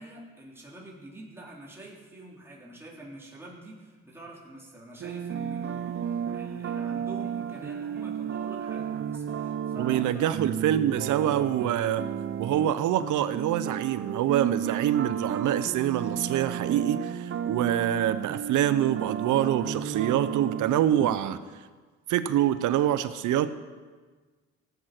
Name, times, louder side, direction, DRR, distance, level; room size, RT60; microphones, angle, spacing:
voice 1, 0.0-10.4, right 1 dB, 10° right, -5 dB, 3.4 m, -46 dB
sound 1, 5.0-21.2, right 8 dB, 45° right, 0.7 m, -33 dB
voice 2, 9.8-12.0 12.4-21.4 22.1-23.5, right 11 dB, 80° right, 13 dB, 0.8 m, -25 dB
17.0 x 8.1 x 5.9 m, 1.4 s
cardioid pair, 90°, 30 cm